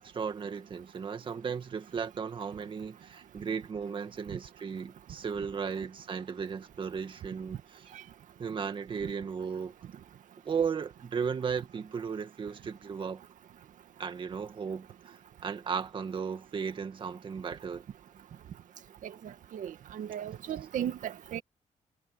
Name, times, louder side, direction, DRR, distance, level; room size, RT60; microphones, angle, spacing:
voice 1, 0.0-7.6 8.4-9.7 10.4-13.2 14.0-17.8, right 6 dB, 40° right, 2.0 m, -35 dB
voice 2, 19.0-21.4, right 10 dB, 75° right, 2.0 m, -36 dB
wide cardioid pair, 170°, 14 cm